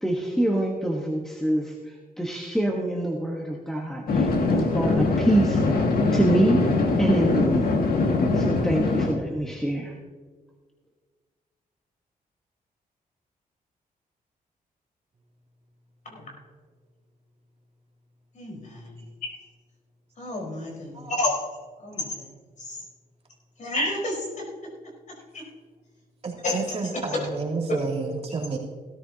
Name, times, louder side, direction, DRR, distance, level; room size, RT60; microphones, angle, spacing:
voice 1, 0.0-5.6 6.1-6.7 7.0-7.7 8.3-9.9, right 1 dB, 5° left, -1 dB, 1.2 m, -25 dB
sound 1, 4.1-9.1, left 3 dB, 80° left, 1.8 m, -22 dB
voice 2, 18.3-18.9 20.2-21.4 21.8-22.3 22.6-22.8 23.6-24.5 25.3-25.4 26.4-26.5, left 1 dB, 55° left, -1 dB, 4.5 m, -30 dB
voice 3, 26.2-28.6, right 4 dB, 40° right, -2 dB, 2.6 m, -31 dB
16.5 x 13.5 x 2.8 m, 1.5 s
cardioid pair, 115°, 15 cm